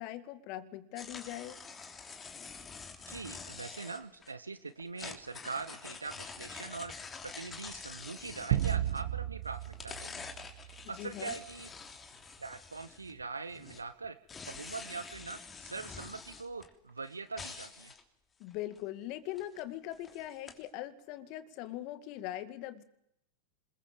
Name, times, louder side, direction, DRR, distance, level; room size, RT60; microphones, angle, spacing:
voice 1, 0.0-1.6 10.8-11.4 18.4-22.8, left 14 dB, 50° left, 12 dB, 2.2 m, -41 dB
sound 1, 1.0-4.3 4.8-9.2 9.5-13.2 13.5-18.0 18.5-18.8 19.4-19.6 19.9-20.6, left 5 dB, 20° left, 3.2 m, -47 dB
voice 2, 3.1-6.9 7.2-11.7 12.4-14.2 14.5-17.9, right 4 dB, 90° right, 12 dB, 1.0 m, -43 dB
sound 2, 8.5-11.1, right 12 dB, 60° right, 1.2 m, -34 dB
26.5 x 21.5 x 7.4 m, 0.77 s
figure-of-eight pair, 95°, 0 cm